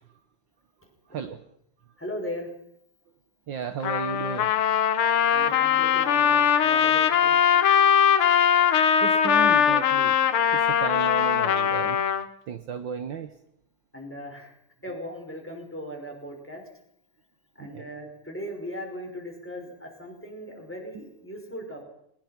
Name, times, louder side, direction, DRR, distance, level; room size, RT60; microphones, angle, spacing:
voice 1, 2.0-2.5 5.3-7.4 13.9-14.5 14.8-16.6 17.6-21.8, equal, 5° left, 1 dB, 5.6 m, -38 dB
voice 2, 3.5-4.5 9.0-10.2 10.5-12.0 12.5-13.3 17.6-17.8, right 7 dB, 65° right, 8 dB, 1.7 m, -33 dB
Trumpet, 3.8-12.2, left 8 dB, 80° left, 2.1 m, -21 dB
21.5 x 20.5 x 5.9 m, 0.74 s
omnidirectional pair, 2.4 m